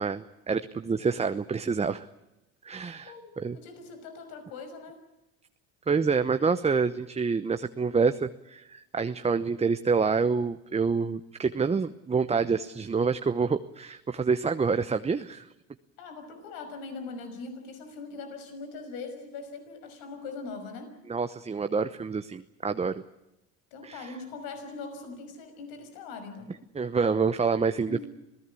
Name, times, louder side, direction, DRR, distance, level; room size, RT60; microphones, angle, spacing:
voice 1, 0.0-2.1 2.6-3.6 5.9-15.5 21.1-23.0 23.8-24.1 26.7-28.1, right 5 dB, 20° right, 10 dB, 0.9 m, -27 dB
voice 2, 3.1-5.0 16.0-20.9 23.7-26.6 27.9-28.1, left 4 dB, 75° left, 7 dB, 5.8 m, -41 dB
27.0 x 17.5 x 8.4 m, 0.94 s
supercardioid pair, 95°, 36 cm